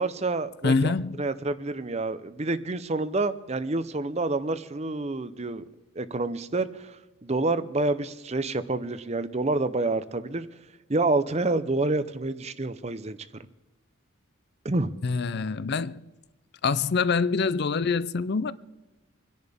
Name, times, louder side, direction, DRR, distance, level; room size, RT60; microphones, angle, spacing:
voice 1, 0.0-5.6 6.0-7.0 7.2-10.5 10.9-13.2 14.6-14.9, right 2 dB, 30° right, 0.6 m, -28 dB
voice 2, 0.6-1.2 15.0-16.0 16.6-18.5, left 4 dB, 50° left, 0.5 m, -25 dB
26.5 x 10.5 x 3.6 m
head